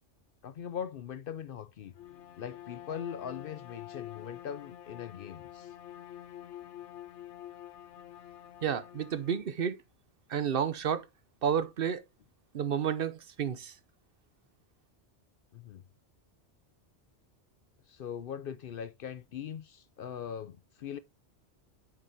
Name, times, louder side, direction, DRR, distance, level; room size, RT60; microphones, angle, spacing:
voice 1, 0.4-1.9 2.4-5.7 15.5-15.8 17.9-21.0, left 8 dB, 60° left, 0.7 m, -41 dB
Bowed string instrument, 1.9-9.5, left 12 dB, 80° left, 1.0 m, -47 dB
voice 2, 8.6-9.8 10.3-11.1 11.4-12.0 12.5-13.8, right 8 dB, 60° right, 0.8 m, -31 dB
8.8 x 6.6 x 2.7 m
omnidirectional pair, 1.2 m